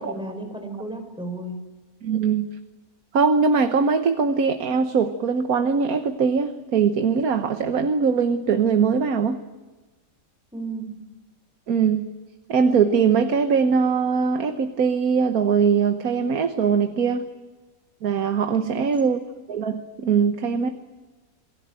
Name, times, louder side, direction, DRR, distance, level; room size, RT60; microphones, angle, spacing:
voice 1, 0.0-1.6 10.5-11.0 18.6-18.9, right 2 dB, 5° right, 5 dB, 4.8 m, -33 dB
voice 2, 2.0-2.5 3.1-9.4 11.7-12.1 12.5-17.3 18.0-19.2 19.5-20.7, right 6 dB, 75° right, 7 dB, 1.6 m, -21 dB
27.5 x 19.0 x 9.0 m, 1.2 s
omnidirectional pair, 1.5 m